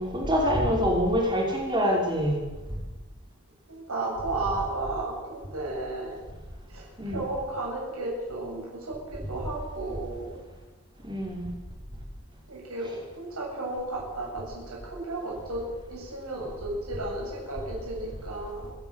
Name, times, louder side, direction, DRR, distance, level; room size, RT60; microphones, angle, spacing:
voice 1, 0.0-2.4 7.0-7.3 11.0-11.5, equal, 20° right, -1 dB, 5.3 m, -25 dB
voice 2, 3.7-6.2 6.7-10.3 12.5-15.6 15.9-18.7, right 2 dB, 85° right, -4 dB, 7.8 m, -34 dB
27.0 x 10.5 x 9.2 m, 1.2 s
head